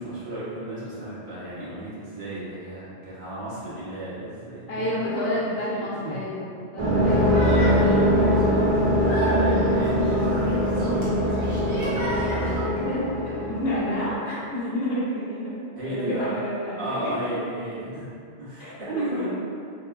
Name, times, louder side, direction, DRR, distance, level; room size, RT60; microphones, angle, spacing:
voice 1, 0.0-4.9 5.8-6.2 7.2-8.5 9.1-11.8 13.4-13.6 15.7-16.4 16.8-18.1 18.4-19.3, right 1 dB, 85° right, -11 dB, 1.2 m, -34 dB
voice 2, 4.7-8.4 12.3-15.5 15.9-17.1 18.6-19.0, left 1 dB, 70° left, -7 dB, 0.9 m, -30 dB
sound 1, 6.8-14.1, equal, 45° right, 0.4 m, -22 dB
sound 2, 7.0-12.6, equal, 35° left, 0.6 m, -32 dB
3.1 x 2.1 x 2.2 m, 2.4 s
omnidirectional pair, 1.1 m